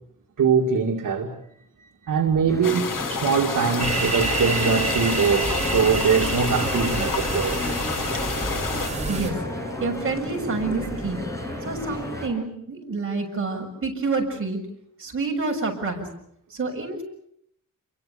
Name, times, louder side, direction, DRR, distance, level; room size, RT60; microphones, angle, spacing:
voice 1, 0.4-1.3 1.8-7.7, right 6 dB, 75° right, 2.3 m, -22 dB
sound 1, 2.5-12.3, left 1 dB, 10° left, 6.7 m, -32 dB
sound 2, 2.6-8.9, left 6 dB, 80° left, 2.5 m, -30 dB
sound 3, 3.8-9.3, right 3 dB, 20° right, 6.1 m, -29 dB
voice 2, 9.8-11.2 11.6-14.6 15.0-16.1 16.5-17.0, right 3 dB, 40° right, 6.9 m, -28 dB
28.5 x 23.5 x 7.0 m
wide cardioid pair, 160°, 32 cm